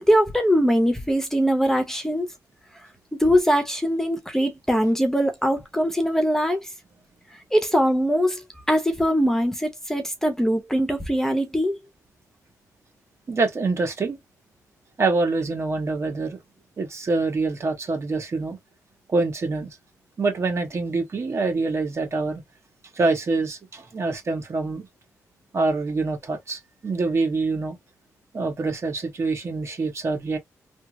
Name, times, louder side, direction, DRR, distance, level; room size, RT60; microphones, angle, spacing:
voice 1, 0.1-2.3 3.2-6.6 7.5-8.4 8.7-11.8, equal, 5° left, 0.8 m, -21 dB
voice 2, 13.3-14.2 15.0-16.4 16.8-18.6 19.1-19.7 20.2-22.4 23.0-24.9 25.5-27.8 28.3-30.4, right 3 dB, 50° right, 1.4 m, -25 dB
3.4 x 2.0 x 2.8 m
cardioid pair, 90°, 6 cm